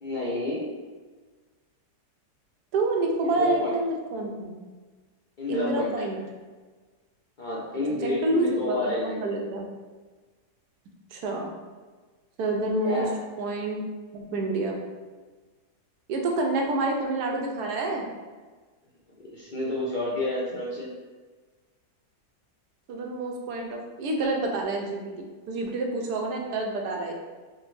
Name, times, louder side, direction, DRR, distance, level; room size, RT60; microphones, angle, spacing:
voice 1, 0.0-0.8 3.2-3.7 5.4-5.9 7.4-9.2 12.8-13.2 19.3-20.9, left 1 dB, 65° left, -7 dB, 0.4 m, -30 dB
voice 2, 2.7-4.6 5.5-6.2 7.7-9.7 11.1-11.5 12.4-13.1 13.4-13.8 14.1-14.8 16.1-18.1 22.9-25.0 25.5-27.1, right 2 dB, 80° right, 1 dB, 1.1 m, -28 dB
4.9 x 2.1 x 3.1 m, 1.4 s
omnidirectional pair, 1.7 m